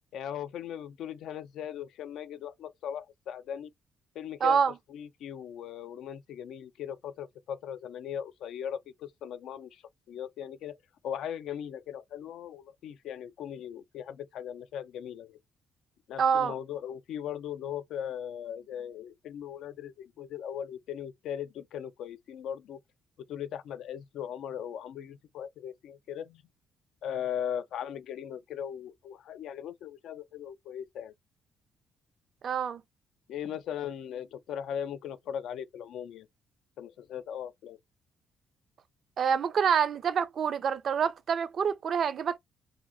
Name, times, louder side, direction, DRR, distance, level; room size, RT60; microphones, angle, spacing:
voice 1, 0.1-3.7 4.2-4.6 4.9-10.8 11.0-15.4 16.1-22.8 23.3-26.4 27.0-31.1 33.3-36.3 36.8-37.8, left 9 dB, 80° left, 0.3 m, -38 dB
voice 2, 4.4-4.7 16.2-16.5 32.4-32.8 39.2-42.4, right 7 dB, 55° right, 0.4 m, -26 dB
2.8 x 2.6 x 2.5 m
cardioid pair, 90°, 0 cm